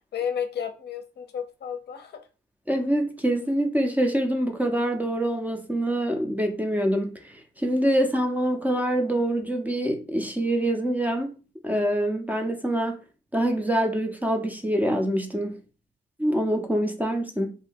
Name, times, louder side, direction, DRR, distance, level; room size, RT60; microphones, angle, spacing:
voice 1, 0.1-2.3, left 7 dB, 55° left, 0.6 m, -32 dB
voice 2, 2.7-11.3 11.6-13.0 13.3-15.6 16.2-17.6, right 1 dB, 10° right, 0.5 m, -25 dB
2.6 x 2.1 x 3.4 m
cardioid pair, 90°, 20 cm